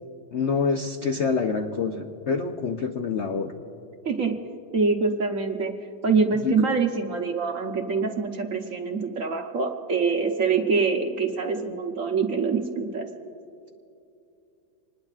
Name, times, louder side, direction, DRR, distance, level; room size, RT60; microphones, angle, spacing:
voice 1, 0.3-3.5 6.4-6.5, left 5 dB, 65° left, 5 dB, 0.6 m, -26 dB
voice 2, 4.0-4.4 4.7-13.1, right 4 dB, 50° right, 3 dB, 1.1 m, -25 dB
26.5 x 20.5 x 2.4 m, 2.7 s
omnidirectional pair, 2.1 m